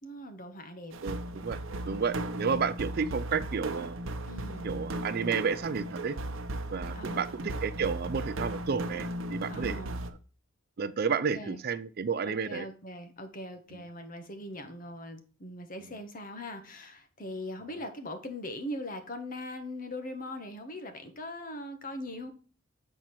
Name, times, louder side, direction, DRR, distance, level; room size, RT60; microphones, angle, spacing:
voice 1, 0.0-0.9 4.3-4.7 6.9-7.4 9.5-10.0 11.1-11.6 12.3-22.3, left 1 dB, 40° left, 7 dB, 1.3 m, -41 dB
sound 1, 0.9-10.1, right 1 dB, 70° right, 0.9 m, -36 dB
voice 2, 1.0-1.6 1.9-4.0 4.6-6.2 6.7-10.1 10.8-12.7 13.7-13.8, right 5 dB, 45° right, 14 dB, 0.4 m, -31 dB
7.8 x 4.4 x 4.2 m, 0.38 s
head